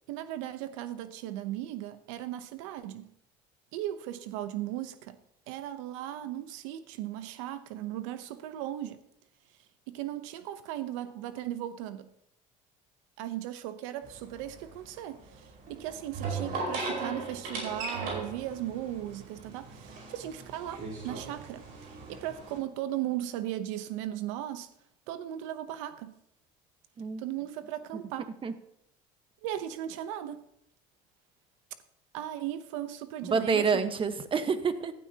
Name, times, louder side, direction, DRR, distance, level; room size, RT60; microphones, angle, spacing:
voice 1, 0.1-3.1 3.7-5.2 5.5-9.0 9.9-12.1 13.2-21.6 22.1-24.7 25.1-26.2 27.2-28.3 29.4-30.5 32.1-33.9, right 12 dB, 85° right, 0.8 m, -37 dB
sound 1, 14.0-22.6, right 3 dB, 65° right, 4.8 m, -38 dB
voice 2, 33.3-34.9, right 5 dB, 35° right, 1.2 m, -27 dB
14.0 x 12.0 x 2.9 m
supercardioid pair, 90°, 16 cm